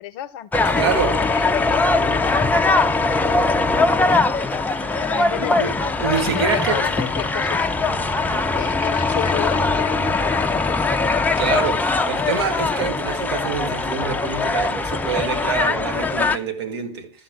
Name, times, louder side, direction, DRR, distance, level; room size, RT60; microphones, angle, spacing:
voice 1, 0.0-4.3 4.9-5.8 6.1-11.7, left 14 dB, 50° left, 0.8 m, -33 dB
sound 1, 0.5-16.4, left 3 dB, 10° left, 0.7 m, -21 dB
voice 2, 0.8-1.2 5.4-6.8 8.3-8.4 11.4-11.8 12.1-17.1, right 6 dB, 60° right, 2.1 m, -26 dB
13.0 x 5.8 x 7.1 m
figure-of-eight pair, 80°, 15 cm